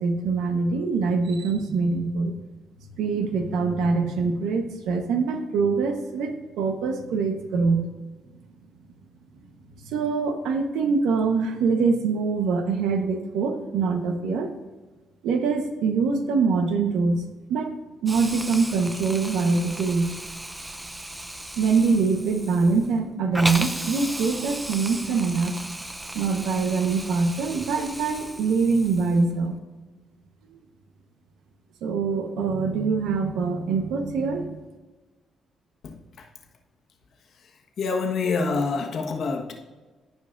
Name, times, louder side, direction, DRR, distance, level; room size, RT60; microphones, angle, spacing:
voice 1, 0.0-2.3 3.0-7.9 9.8-14.5 15.2-17.2 17.5-17.8 18.0-20.1 21.6-25.5 26.1-29.6 30.5-30.6 31.8-34.6, right 4 dB, 90° right, 6 dB, 1.0 m, -24 dB
Hiss, 18.1-29.3, right 1 dB, 10° right, 0.6 m, -35 dB
voice 2, 35.8-36.3 37.8-39.5, left 4 dB, 60° left, 2 dB, 1.3 m, -27 dB
15.0 x 5.4 x 2.6 m, 1.3 s
cardioid pair, 90°, 0 cm